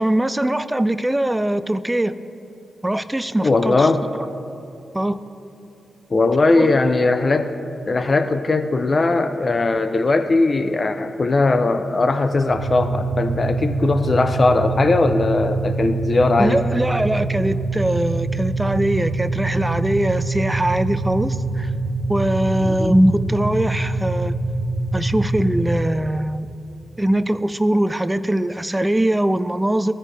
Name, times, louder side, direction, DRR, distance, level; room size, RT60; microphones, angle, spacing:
voice 1, 0.0-2.1 2.8-3.9 4.1-4.3 4.9-5.2 6.6-6.8 16.4-21.7 22.1-24.4 24.9-26.5 27.0-29.9, right 1 dB, 15° right, 13 dB, 0.4 m, -21 dB
voice 2, 3.4-4.0 6.1-7.5 7.9-16.6 22.6-22.9, left 3 dB, 45° left, 9 dB, 0.5 m, -19 dB
sound 1, 12.5-25.8, right 3 dB, 50° right, 1.0 m, -25 dB
15.5 x 5.3 x 3.3 m, 2.7 s
supercardioid pair, 40°, 0 cm